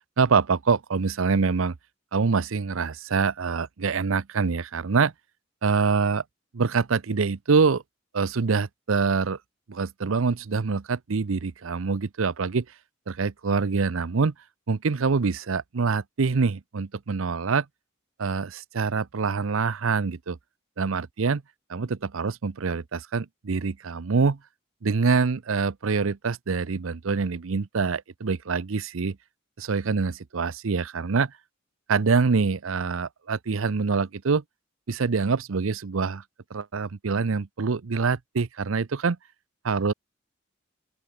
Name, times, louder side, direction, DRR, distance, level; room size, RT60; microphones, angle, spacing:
voice 1, 0.2-1.8 2.1-5.1 5.6-6.2 6.5-7.8 8.1-9.4 9.7-12.7 13.1-14.3 14.7-17.7 18.2-20.4 20.8-21.4 21.7-24.4 24.8-29.2 29.6-31.3 31.9-34.4 34.9-36.2 36.5-39.2 39.6-39.9, right 4 dB, 80° right, 0.6 m, -25 dB
open air
head